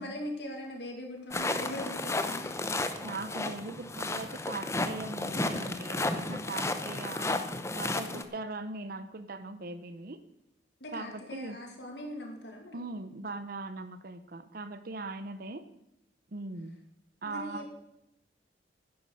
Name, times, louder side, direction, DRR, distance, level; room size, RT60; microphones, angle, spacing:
voice 1, 0.0-2.5 8.1-8.2 10.8-12.9 17.2-17.7, left 1 dB, 75° left, 2 dB, 2.4 m, -41 dB
sound 1, 1.3-8.2, left 2 dB, 15° left, 0.8 m, -33 dB
voice 2, 3.0-10.2 10.9-11.6 12.7-15.6 16.3-16.7 17.2-17.7, right 3 dB, 55° right, 10 dB, 0.9 m, -40 dB
10.5 x 9.7 x 6.5 m, 0.82 s
head